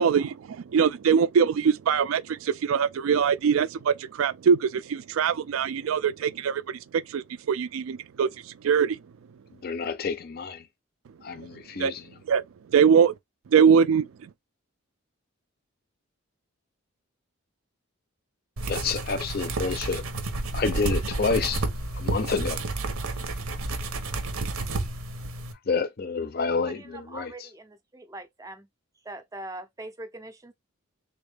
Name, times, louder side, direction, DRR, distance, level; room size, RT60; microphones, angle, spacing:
voice 1, 0.0-8.3 8.6-9.0 11.8-11.9 12.3-12.4 12.7-13.1 13.5-14.1, right 7 dB, 75° right, 0.3 m, -22 dB
voice 2, 9.5-10.7 11.2-12.2 18.7-20.0 20.5-21.6 21.9-22.6 25.7-27.5, left 4 dB, 45° left, 0.5 m, -29 dB
sound 1, 18.6-25.5, right 2 dB, 90° right, 0.8 m, -30 dB
voice 3, 26.7-28.7 29.0-30.5, right 2 dB, 15° right, 0.4 m, -42 dB
3.6 x 2.5 x 3.3 m
head